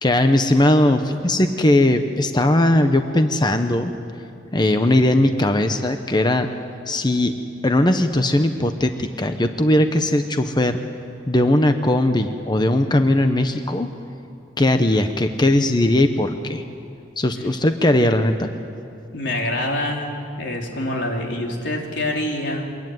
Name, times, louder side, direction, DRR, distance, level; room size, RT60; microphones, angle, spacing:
voice 1, 0.0-3.9 4.5-6.5 6.9-7.3 7.6-10.8 11.3-13.9 14.6-16.6 17.2-18.5, left 1 dB, 25° left, 7 dB, 1.0 m, -19 dB
voice 2, 19.1-20.1 20.4-22.7, left 1 dB, 85° left, 1 dB, 3.7 m, -25 dB
24.0 x 22.0 x 9.4 m, 2.6 s
head